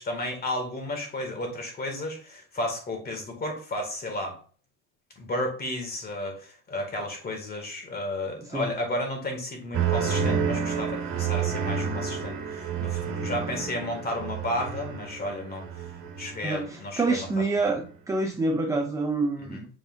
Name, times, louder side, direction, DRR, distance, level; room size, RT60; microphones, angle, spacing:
voice 1, 0.0-4.4 5.2-15.7 16.2-17.3 19.4-19.6, left 1 dB, 20° left, 3 dB, 2.0 m, -33 dB
sound 1, 9.7-16.8 17.2-17.7, right 6 dB, 45° right, 1.9 m, -30 dB
voice 2, 16.4-19.7, right 3 dB, 10° right, 4 dB, 0.5 m, -27 dB
7.6 x 5.0 x 2.5 m, 0.42 s
supercardioid pair, 135°, 41 cm